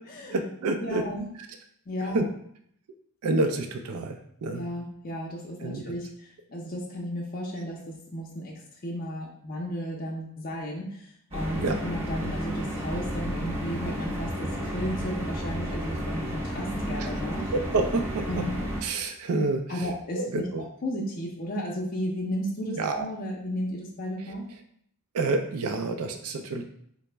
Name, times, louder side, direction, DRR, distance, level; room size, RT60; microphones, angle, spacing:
voice 1, 0.3-1.1 1.4-1.5 2.0-2.3 3.2-4.7 5.6-5.8 11.6-11.8 17.0-17.1 17.5-18.4 18.8-19.9 20.1-20.6 22.8-23.1 25.1-26.6, right 3 dB, 80° right, 6 dB, 0.4 m, -28 dB
voice 2, 0.8-1.3 1.9-2.2 4.5-8.5 8.8-11.1 11.3-17.5 18.3-18.6 19.7-20.4 20.8-24.5, equal, 40° left, -2 dB, 0.5 m, -34 dB
sound 1, 11.3-18.8, equal, 25° right, 0.7 m, -32 dB
4.0 x 2.0 x 3.3 m, 0.68 s
head